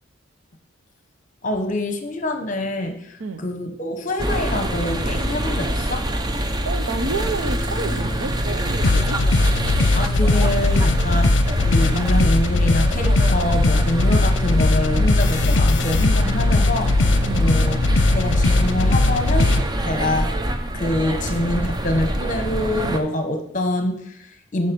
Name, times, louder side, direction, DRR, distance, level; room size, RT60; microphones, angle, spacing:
voice 1, 1.4-6.1 9.9-11.4 11.6-17.0 17.3-17.8 18.1-20.3 20.7-24.7, left 1 dB, 40° left, 6 dB, 1.0 m, -25 dB
sound 1, 4.2-23.0, right 1 dB, 20° right, 0.6 m, -25 dB
voice 2, 6.6-9.2 11.1-11.2 17.2-17.4, right 3 dB, 70° right, 10 dB, 0.8 m, -29 dB
sound 2, 8.8-19.6, left 2 dB, 60° left, 0.6 m, -19 dB
9.2 x 6.6 x 5.3 m, 0.76 s
head